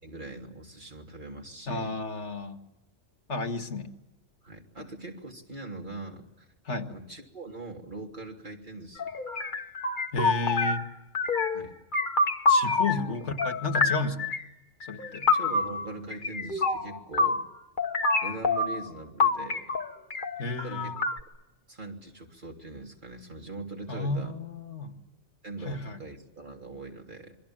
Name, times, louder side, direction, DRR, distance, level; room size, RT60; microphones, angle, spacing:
voice 1, 0.0-1.9 4.4-6.5 6.9-9.1 11.5-11.8 12.9-13.2 15.0-17.4 18.2-19.7 20.6-21.2 21.7-24.3 25.4-27.4, right 2 dB, 45° right, 1 dB, 3.3 m, -42 dB
voice 2, 1.7-2.6 3.3-3.9 6.7-6.9 10.1-10.8 12.5-14.4 14.9-15.3 20.4-21.0 23.9-25.0 25.7-26.0, left 3 dB, 80° left, 6 dB, 2.0 m, -32 dB
sound 1, 9.0-10.9 11.1-11.7 11.9-13.1 13.4-14.4 14.8-17.5 17.8-18.9 19.2-21.2, left 3 dB, 45° left, 1.5 m, -27 dB
27.0 x 22.5 x 8.8 m, 0.96 s
omnidirectional pair, 1.2 m